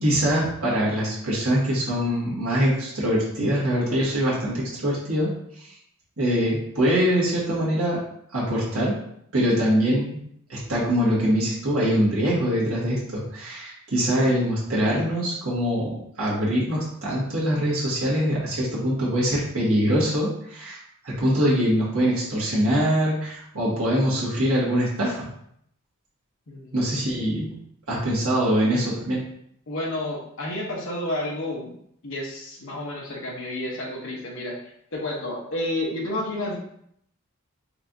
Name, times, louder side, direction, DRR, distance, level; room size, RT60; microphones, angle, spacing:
voice 1, 0.0-5.3 6.2-8.0 8.3-9.0 9.3-10.2 10.5-15.9 16.2-20.8 21.0-25.3 26.7-27.5 27.9-29.2, equal, 70° right, -7 dB, 1.6 m, -23 dB
voice 2, 29.7-31.8 32.0-36.6, left 1 dB, 60° left, -2 dB, 0.9 m, -30 dB
4.3 x 3.3 x 2.6 m, 0.70 s
head